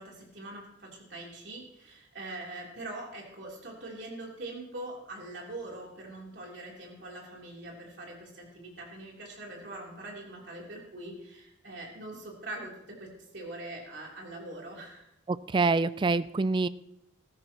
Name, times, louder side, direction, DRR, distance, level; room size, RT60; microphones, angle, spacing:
voice 1, 0.0-15.1, right 2 dB, 65° right, -2 dB, 3.4 m, -43 dB
voice 2, 15.3-16.7, right 3 dB, 25° right, 16 dB, 0.3 m, -26 dB
15.0 x 13.5 x 3.0 m, 0.81 s
head